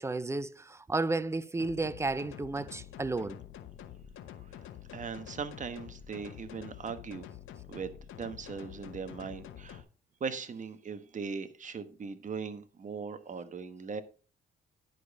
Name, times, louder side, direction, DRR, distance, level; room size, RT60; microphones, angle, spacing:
voice 1, 0.0-3.4, right 3 dB, 15° right, 0.6 m, -32 dB
sound 1, 1.6-9.8, left 10 dB, 85° left, 1.0 m, -47 dB
voice 2, 4.3-7.3 7.7-9.8 10.2-14.0, right 5 dB, 40° right, 1.2 m, -40 dB
10.5 x 5.1 x 5.3 m
cardioid pair, 90°, 20 cm